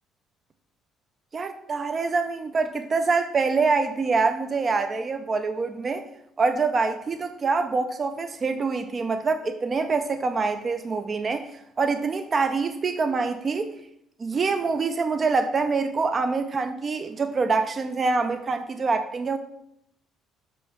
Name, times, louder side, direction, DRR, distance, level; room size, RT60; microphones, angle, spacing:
voice 1, 1.3-6.0 6.4-13.7 14.2-19.4, right 4 dB, 25° right, 8 dB, 0.3 m, -25 dB
6.2 x 2.8 x 5.6 m, 0.76 s
cardioid pair, 145°, 0 cm